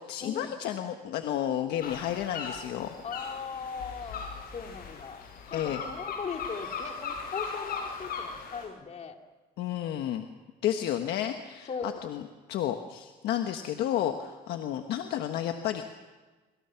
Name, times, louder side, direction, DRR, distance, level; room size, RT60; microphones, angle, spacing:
voice 1, 0.0-2.9 5.5-5.8 9.6-10.2 10.6-11.7 12.0-12.2 12.5-15.9, left 11 dB, 75° left, 6 dB, 1.4 m, -31 dB
sound 1, 1.8-8.7, left 5 dB, 60° left, 6.8 m, -38 dB
voice 2, 3.0-5.2 5.5-9.2 11.7-12.0, left 5 dB, 40° left, 4 dB, 2.6 m, -39 dB
26.5 x 25.0 x 5.9 m, 1.3 s
cardioid pair, 110°, 17 cm